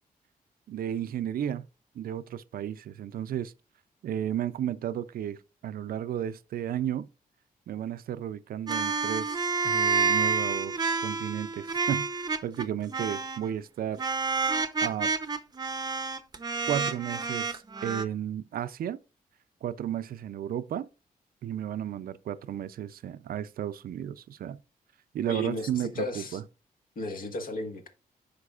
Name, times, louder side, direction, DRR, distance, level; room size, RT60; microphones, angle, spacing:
voice 1, 0.7-1.7 2.0-3.5 4.0-7.1 7.7-14.0 14.8-15.1 16.7-19.0 19.6-20.9 21.4-24.6 25.1-26.4, right 10 dB, 70° right, 0.5 m, -33 dB
sound 1, 8.7-12.6 12.9-13.5 14.0-18.0, right 4 dB, 25° right, 0.6 m, -29 dB
voice 2, 25.3-26.4 26.9-27.9, left 1 dB, 65° left, 1.5 m, -34 dB
13.0 x 5.2 x 2.4 m
wide cardioid pair, 135°, 16 cm